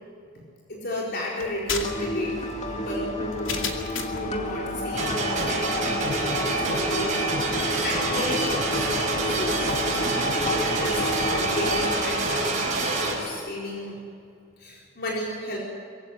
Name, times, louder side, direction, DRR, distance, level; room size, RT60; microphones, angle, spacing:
voice 1, 0.7-2.3 2.7-3.5 4.0-8.9 9.3-14.0 14.6-15.6, left 1 dB, 55° left, -3 dB, 4.4 m, -33 dB
sound 1, 1.4-4.3, left 5 dB, 80° left, 2.4 m, -33 dB
sound 2, 1.8-12.0, left 2 dB, 35° left, 2.1 m, -31 dB
sound 3, 4.9-13.1, right 2 dB, 40° right, 5.6 m, -26 dB
22.5 x 16.0 x 9.4 m, 2.3 s
head